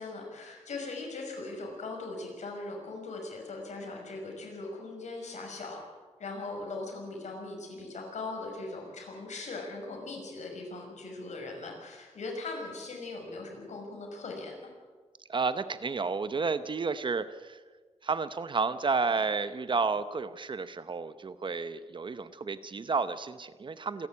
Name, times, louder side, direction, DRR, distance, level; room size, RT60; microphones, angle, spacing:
voice 1, 0.0-5.8 6.2-14.5, left 3 dB, 80° left, 1 dB, 6.0 m, -40 dB
voice 2, 15.3-17.6 18.0-24.1, right 4 dB, 40° right, 13 dB, 0.8 m, -31 dB
27.0 x 11.5 x 8.6 m, 1.4 s
wide cardioid pair, 110°, 12 cm